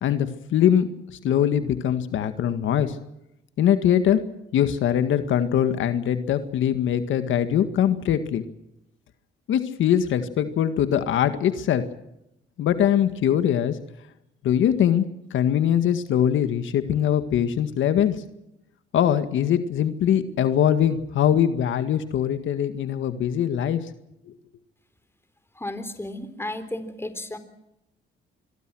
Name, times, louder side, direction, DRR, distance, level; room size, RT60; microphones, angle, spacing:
voice 1, 0.0-0.9 1.2-3.0 3.6-4.2 4.5-8.4 9.5-11.8 12.6-13.8 14.4-18.2 18.9-23.8 24.3-24.4, left 9 dB, 75° left, 10 dB, 1.9 m, -22 dB
voice 2, 25.6-27.4, left 1 dB, 10° left, 10 dB, 3.8 m, -33 dB
26.0 x 22.5 x 6.3 m, 0.85 s
cardioid pair, 90°, 20 cm